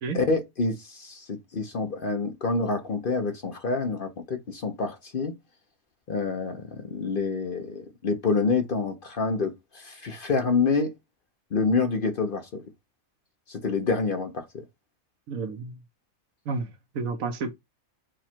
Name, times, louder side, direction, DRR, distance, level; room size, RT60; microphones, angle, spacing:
voice 1, 0.1-5.3 6.1-10.9 11.5-12.6 13.5-14.4, left 4 dB, 45° left, 0.9 m, -27 dB
voice 2, 15.3-15.8 16.5-17.5, right 4 dB, 80° right, 1.3 m, -31 dB
4.9 x 2.3 x 4.4 m
omnidirectional pair, 1.4 m